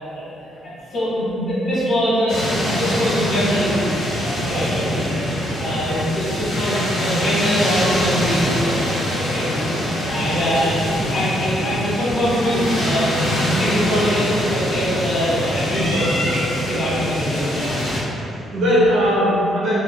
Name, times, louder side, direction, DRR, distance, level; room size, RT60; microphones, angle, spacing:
voice 1, 0.0-3.8 4.2-4.9 5.6-8.9 9.2-9.5 10.1-10.8 11.1-16.3 16.7-17.6 18.8-19.1, equal, 60° left, -10 dB, 1.2 m, -23 dB
sound 1, 2.3-18.0, equal, 75° left, 0.9 m, -24 dB
voice 2, 4.7-5.1 5.8-5.9 9.4-9.6 10.3-10.5 18.2-19.8, equal, 75° right, -7 dB, 0.8 m, -20 dB
3.6 x 2.1 x 2.2 m, 2.8 s
cardioid pair, 90°, 0 cm